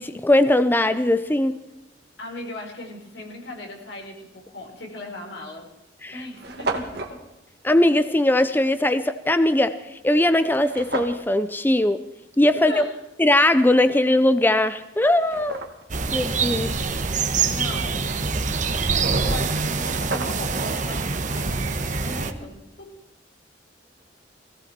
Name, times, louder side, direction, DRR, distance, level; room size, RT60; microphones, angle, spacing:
voice 1, 0.0-1.6 6.0-6.2 7.6-9.7 10.0-12.0 12.4-12.8 13.2-15.6 16.1-16.7, left 1 dB, 10° left, 11 dB, 0.6 m, -20 dB
voice 2, 2.2-5.7 6.1-7.2 12.7-13.0 17.4-18.1 18.9-23.0, left 2 dB, 80° left, 1 dB, 4.5 m, -38 dB
sound 1, 4.8-5.0 5.7-5.8 6.0-6.1 6.3-7.2 10.6-11.3 14.2-14.3 14.8-16.0 19.3-19.4 19.6-20.6, right 3 dB, 65° right, 2.1 m, -32 dB
sound 2, 15.9-22.3, right 4 dB, 45° right, 1.2 m, -25 dB
19.0 x 17.0 x 4.4 m, 0.94 s
head